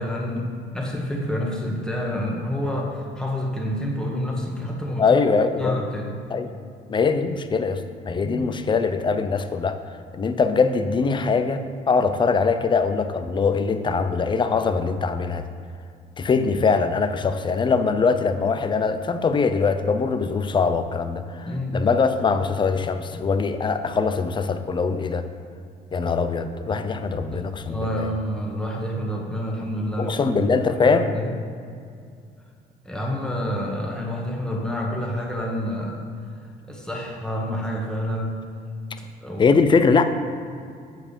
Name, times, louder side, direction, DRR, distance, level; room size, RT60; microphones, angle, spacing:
voice 1, 0.0-5.1 5.6-6.1 8.2-8.5 21.5-21.9 23.1-23.2 27.3-30.4 30.8-31.3 32.8-36.0 36.7-38.4 39.0-39.6, equal, 5° left, -2 dB, 1.5 m, -28 dB
voice 2, 5.0-5.8 6.3-6.5 6.9-9.8 10.1-15.4 16.2-25.2 25.9-28.1 30.0-31.2 39.4-40.1, left 4 dB, 30° left, 9 dB, 0.6 m, -22 dB
7.8 x 4.9 x 7.0 m, 2.3 s
cardioid pair, 110°, 17 cm